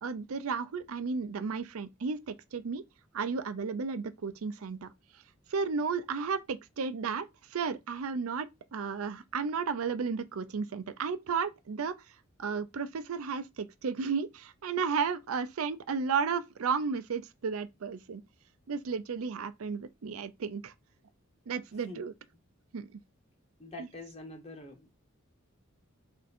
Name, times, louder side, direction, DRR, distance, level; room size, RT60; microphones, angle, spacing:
voice 1, 0.0-2.8 3.1-4.9 5.5-8.5 8.7-12.0 12.4-18.2 18.7-20.7 21.5-22.1 22.7-22.9, right 5 dB, 90° right, 0.5 m, -33 dB
voice 2, 23.6-24.9, left 1 dB, 30° left, 0.9 m, -45 dB
3.6 x 2.6 x 4.1 m
head